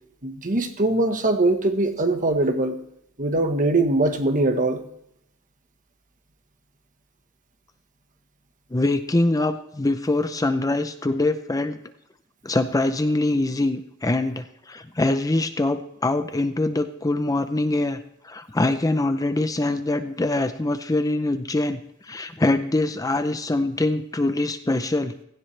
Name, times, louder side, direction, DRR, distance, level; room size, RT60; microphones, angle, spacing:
voice 1, 0.2-2.8 3.2-4.8, right 2 dB, 40° right, 6 dB, 1.3 m, -22 dB
voice 2, 8.7-11.8 12.4-25.1, left 2 dB, 15° left, 9 dB, 0.6 m, -24 dB
16.5 x 15.5 x 3.3 m, 0.77 s
head